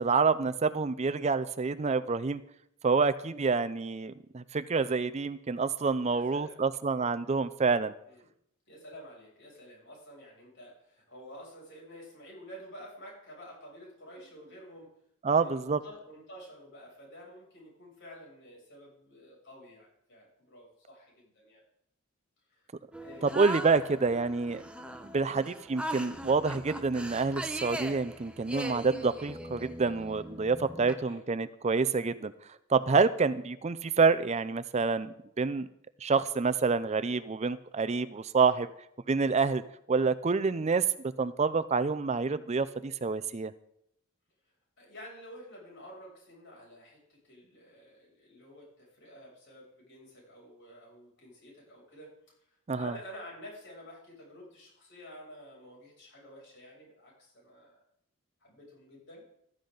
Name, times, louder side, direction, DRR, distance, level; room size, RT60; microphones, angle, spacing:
voice 1, 0.0-2.4 2.8-7.9 15.2-15.8 23.2-24.6 25.1-32.3 32.7-35.7 36.0-38.7 39.1-39.6 39.9-40.9 41.2-43.5 52.7-52.9, right 4 dB, 30° right, 14 dB, 0.5 m, -27 dB
voice 2, 6.1-6.6 8.1-8.2 8.7-14.9 15.3-21.6 22.5-22.7 23.0-23.4 31.0-31.3 44.8-52.1 52.4-57.8 58.4-59.2, equal, 55° left, -2 dB, 7.2 m, -50 dB
sound 1, 22.9-31.0, right 1 dB, 5° right, 0.9 m, -40 dB
15.5 x 13.0 x 3.9 m, 0.74 s
head